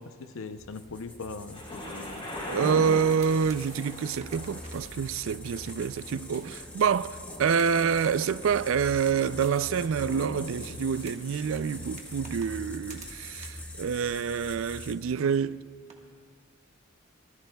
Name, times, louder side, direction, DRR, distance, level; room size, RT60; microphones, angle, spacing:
voice 1, 0.0-2.4 2.9-3.0, left 4 dB, 70° left, 0.7 m, -41 dB
sound 1, 0.6-14.9, left 1 dB, 5° left, 0.8 m, -44 dB
Thunder, 1.5-13.4 14.1-14.2, equal, 30° left, 4.0 m, -42 dB
sound 2, 1.5-7.0 7.5-13.7 14.0-14.9 15.1-15.2 15.9-16.0, right 4 dB, 30° right, 1.5 m, -52 dB
voice 2, 2.5-15.6, right 6 dB, 65° right, 0.3 m, -27 dB
25.0 x 19.5 x 2.3 m
head